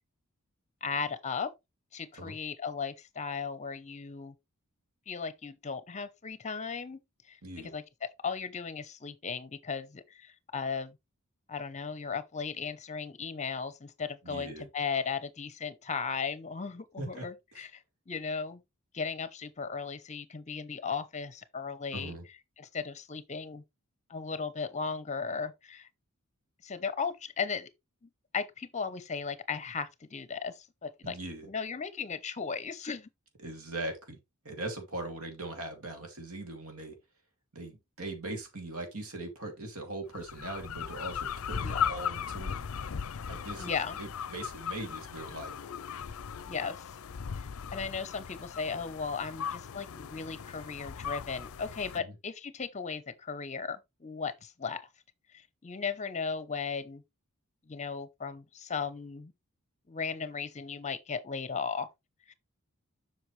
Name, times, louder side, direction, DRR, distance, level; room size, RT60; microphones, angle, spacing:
voice 1, 0.8-1.5 1.9-4.3 5.1-7.0 7.3-7.8 8.2-11.0 11.5-18.6 18.9-22.1 22.6-23.6 24.1-25.9 26.6-27.7 28.0-31.2 31.4-33.1 41.6-41.9 43.6-44.0 46.5-46.9 47.4-54.8 55.3-57.0 57.7-59.3 59.9-61.9 62.3-62.4, left 5 dB, 30° left, 0.8 m, -36 dB
voice 2, 14.2-14.7 17.0-17.3 17.5-17.6 21.9-22.2 31.0-31.5 33.4-34.2 34.4-37.0 37.5-42.6 43.2-45.5 52.0-52.2, right 2 dB, 70° right, 2.5 m, -40 dB
sound 1, 40.1-52.0, left 7 dB, 70° left, 0.5 m, -38 dB
7.7 x 6.0 x 3.2 m
head